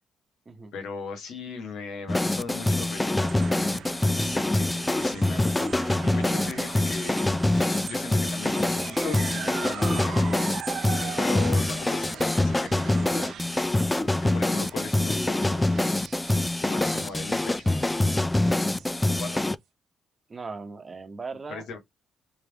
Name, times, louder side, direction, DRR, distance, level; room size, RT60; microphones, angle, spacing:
voice 1, 0.7-10.4 11.0-13.5 14.0-15.7 16.6-18.1 18.3-18.7 19.1-19.4 21.5-21.8, left 4 dB, 75° left, 1.5 m, -39 dB
sound 1, 2.1-19.6, left 2 dB, 15° left, 0.3 m, -25 dB
sound 2, 3.0-19.4, right 8 dB, 70° right, 0.6 m, -41 dB
Laughter, 6.6-8.1 8.6-10.8 11.2-12.4, left 4 dB, 55° left, 1.6 m, -46 dB
voice 2, 20.3-21.8, right 4 dB, 30° right, 1.1 m, -38 dB
3.4 x 3.0 x 3.5 m
cardioid pair, 75°, 0 cm